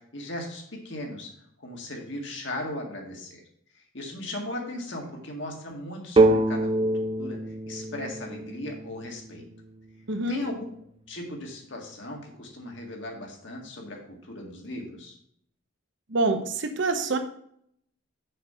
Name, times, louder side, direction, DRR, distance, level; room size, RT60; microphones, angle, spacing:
voice 1, 0.1-1.3 1.6-3.4 3.9-6.7 7.2-7.4 7.7-9.5 10.3-10.7 11.1-15.2, left 1 dB, 60° left, 1 dB, 1.9 m, -37 dB
sound 1, 6.2-9.8, right 2 dB, 25° right, 0.5 m, -25 dB
voice 2, 10.1-10.4 16.1-17.2, right 3 dB, 60° right, 7 dB, 0.9 m, -26 dB
6.6 x 5.4 x 5.5 m, 0.68 s
head